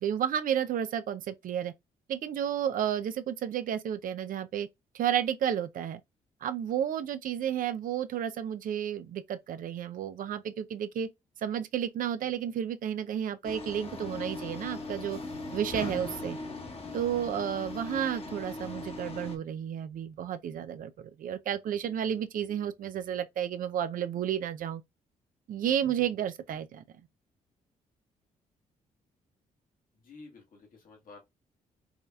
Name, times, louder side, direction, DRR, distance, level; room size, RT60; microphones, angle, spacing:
voice 1, 0.0-1.7 2.1-4.7 4.9-6.0 6.4-11.1 11.4-15.2 15.5-16.4 16.9-24.8 25.5-26.8, right 9 dB, 65° right, 0.5 m, -32 dB
sound 1, 13.4-19.4, left 2 dB, 40° left, 1.3 m, -39 dB
voice 2, 29.9-31.2, left 3 dB, 65° left, 1.7 m, -51 dB
4.8 x 2.7 x 2.3 m
supercardioid pair, 55°, 15 cm